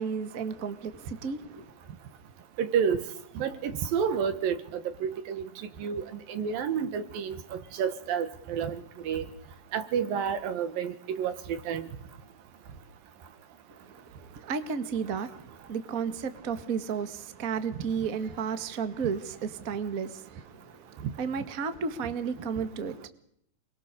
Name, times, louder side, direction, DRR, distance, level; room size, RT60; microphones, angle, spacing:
voice 1, 0.0-1.7 13.7-23.1, right 6 dB, 35° right, 1.5 m, -33 dB
voice 2, 2.6-3.0 3.4-4.6 5.0-5.4 5.8-8.8 9.1-9.2 9.7-11.9 21.0-21.1, right 7 dB, 75° right, 3.1 m, -30 dB
29.0 x 23.5 x 6.8 m
omnidirectional pair, 4.3 m